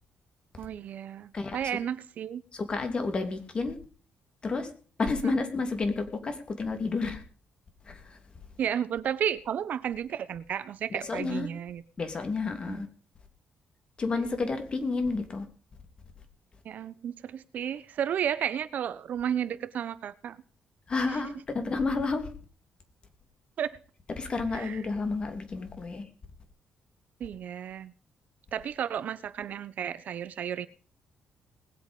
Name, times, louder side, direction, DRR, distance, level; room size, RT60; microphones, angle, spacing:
voice 1, 0.6-2.4 8.6-11.8 12.7-12.8 14.1-14.4 16.6-20.4 21.1-21.2 23.6-23.7 24.5-24.8 27.2-27.9 28.5-30.7, right 9 dB, 60° right, 1.1 m, -33 dB
voice 2, 2.5-3.8 4.4-4.7 5.0-7.2 7.9-8.2 10.9-11.5 12.0-12.9 14.0-15.5 20.9-22.3 24.2-26.0, left 3 dB, 35° left, 3.0 m, -30 dB
20.5 x 8.1 x 5.3 m
cardioid pair, 135°, 3 cm